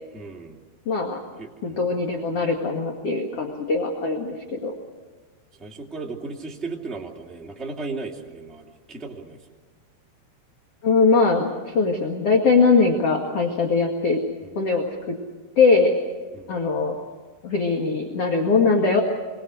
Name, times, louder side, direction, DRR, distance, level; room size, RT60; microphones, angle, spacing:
voice 1, 0.1-0.6 1.3-2.0 4.5-4.6 5.6-9.4 14.4-14.5 16.3-16.6, right 3 dB, ahead, -1 dB, 1.3 m, -36 dB
voice 2, 0.9-1.2 1.6-4.7 10.8-14.2 14.6-15.2 15.6-16.0 16.5-17.0 17.4-19.0, left 4 dB, 45° left, 1 dB, 2.2 m, -21 dB
29.0 x 23.0 x 6.4 m, 1.4 s
omnidirectional pair, 5.0 m